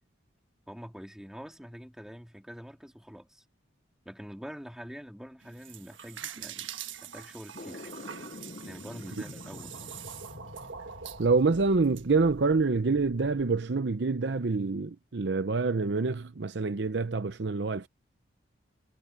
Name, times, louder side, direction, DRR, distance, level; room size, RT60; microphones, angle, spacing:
voice 1, 0.7-3.4 4.0-6.7 7.0-7.9 8.6-10.1, equal, 5° right, 2.4 m, -45 dB
sound 1, 5.4-12.0, right 8 dB, 90° right, 1.5 m, -44 dB
sound 2, 7.5-13.6, left 2 dB, 45° left, 0.7 m, -47 dB
voice 2, 11.2-17.9, right 4 dB, 65° right, 0.7 m, -26 dB
head